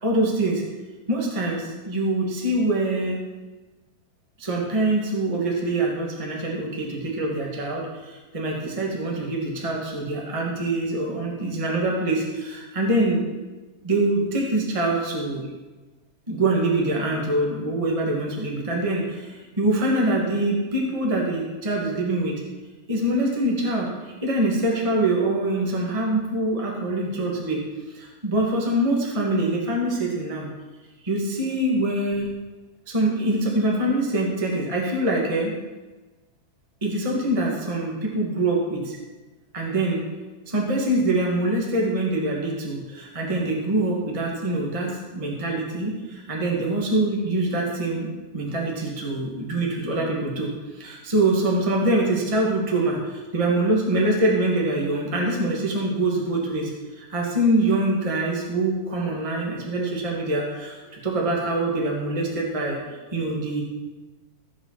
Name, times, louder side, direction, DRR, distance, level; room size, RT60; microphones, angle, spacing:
voice 1, 0.0-0.6 1.1-3.2 4.4-13.3 13.8-15.5 16.3-22.4 22.9-27.6 27.9-30.5 31.0-32.3 32.9-35.5 36.8-39.0 39.5-40.0 40.4-48.1 48.3-63.6, right 2 dB, 15° right, -2 dB, 1.3 m, -24 dB
15.0 x 5.5 x 7.7 m, 1.2 s
omnidirectional pair, 4.5 m